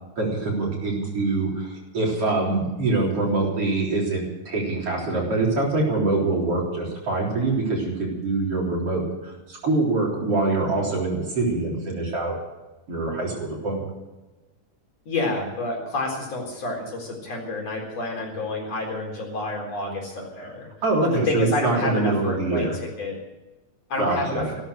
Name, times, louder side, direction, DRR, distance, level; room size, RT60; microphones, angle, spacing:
voice 1, 0.2-12.4 12.9-13.8 20.4-20.5 20.8-22.8 24.0-24.5, right 3 dB, 45° right, -2 dB, 4.6 m, -24 dB
voice 2, 15.1-20.7 21.0-23.2 23.9-24.5, left 2 dB, 50° left, -1 dB, 5.1 m, -29 dB
16.0 x 13.5 x 6.5 m, 1.1 s
omnidirectional pair, 3.8 m